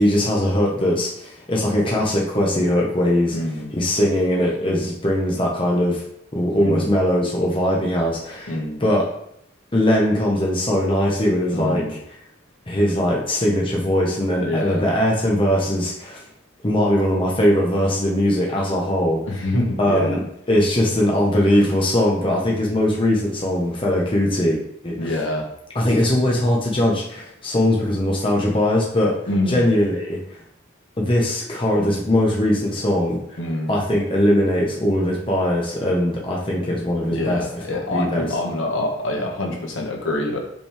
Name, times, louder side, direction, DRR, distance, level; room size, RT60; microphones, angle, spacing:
voice 1, 0.0-3.4 3.7-6.0 6.3-9.1 9.7-12.0 12.7-16.2 16.6-19.5 19.8-20.2 20.5-25.1 25.7-29.2 29.5-30.2 31.0-33.2 33.7-38.3, left 1 dB, 25° left, -3 dB, 1.0 m, -20 dB
voice 2, 3.3-3.7 6.6-6.9 8.5-8.8 11.5-11.9 14.4-14.8 19.3-20.2 25.0-25.5 29.3-29.7 33.4-33.7 37.1-40.4, left 1 dB, 65° left, 0 dB, 1.2 m, -25 dB
5.4 x 5.3 x 3.5 m, 0.72 s
head